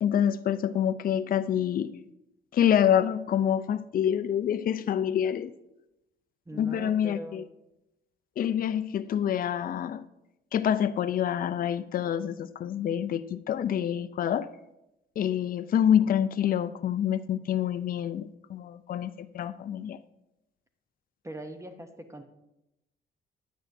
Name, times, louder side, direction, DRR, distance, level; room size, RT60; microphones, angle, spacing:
voice 1, 0.0-2.0 2.5-5.5 6.5-7.4 8.4-10.0 10.5-14.5 15.2-20.0, left 9 dB, 45° left, 0.4 m, -27 dB
voice 2, 6.5-7.5 21.2-22.2, equal, 15° right, 0.8 m, -41 dB
10.0 x 8.8 x 2.6 m
cardioid pair, 90°, 20 cm